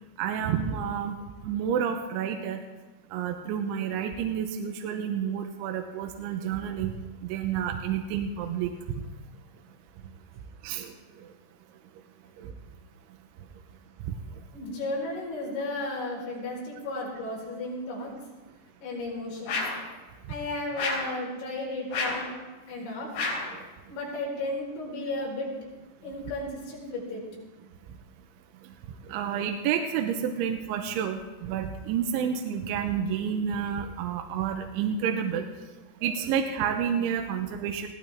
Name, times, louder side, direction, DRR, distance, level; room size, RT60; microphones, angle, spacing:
voice 1, 0.2-1.2 1.4-2.6 3.1-6.9 7.2-8.7 10.6-11.3 12.4-12.5 14.1-14.4 20.3-20.4 23.5-23.7 28.6-28.7 29.0-35.5 36.0-37.9, right 8 dB, 80° right, 4 dB, 3.2 m, -30 dB
voice 2, 14.5-18.1 18.8-19.6 20.3-22.3 22.7-23.1 23.9-25.5 26.0-27.2, left 2 dB, 70° left, -4 dB, 7.1 m, -34 dB
sound 1, 19.5-19.9 20.8-21.2 21.9-22.3 23.1-23.6, left 3 dB, 90° left, 6.9 m, -30 dB
21.0 x 17.5 x 3.6 m, 1.2 s
omnidirectional pair, 5.6 m